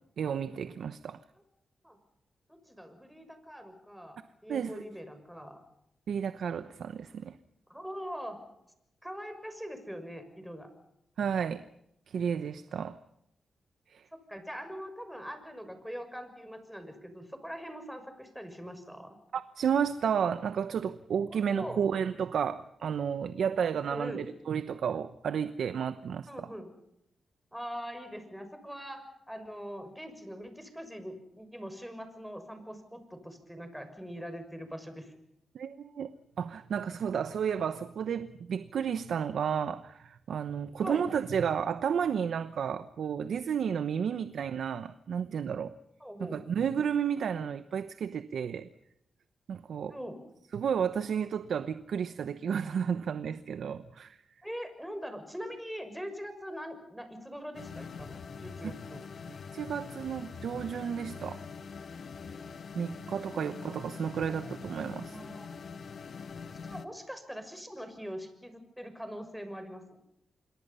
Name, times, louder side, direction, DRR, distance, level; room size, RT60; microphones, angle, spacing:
voice 1, 0.2-1.2 4.5-4.8 6.1-7.4 11.2-11.6 12.1-13.0 13.9-14.1 19.3-26.5 35.5-36.1 36.4-45.7 46.2-48.7 49.5-49.9 50.5-54.2 59.3-61.4 62.7-65.2, right 7 dB, 80° right, 0.9 m, -32 dB
voice 2, 2.5-5.6 7.7-8.4 9.0-10.7 14.1-19.2 21.3-21.9 23.9-24.3 26.3-26.7 27.5-35.2 40.8-41.1 46.0-46.4 49.9-50.2 54.4-59.0 63.8-63.9 64.3-64.5 65.0-65.6 66.6-69.8, equal, ahead, 6.3 m, -42 dB
sound 1, 57.5-66.8, left 5 dB, 65° left, 1.5 m, -44 dB
27.0 x 22.5 x 5.6 m
cardioid pair, 65°, 0 cm